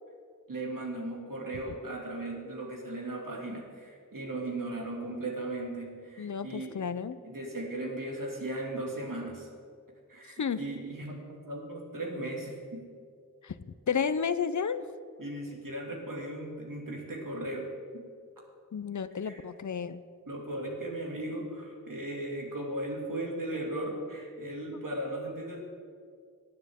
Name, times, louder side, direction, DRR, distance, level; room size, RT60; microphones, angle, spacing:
voice 1, 0.5-6.8 7.2-9.5 10.1-12.9 15.2-17.7 19.2-19.4 20.3-25.6, right 1 dB, 80° right, -1 dB, 2.3 m, -37 dB
voice 2, 6.2-7.2 10.4-10.6 13.4-13.6 13.9-14.9 18.7-20.0 24.7-24.8, left 6 dB, 60° left, 13 dB, 0.6 m, -32 dB
17.5 x 9.6 x 3.6 m, 2.1 s
wide cardioid pair, 55°, 32 cm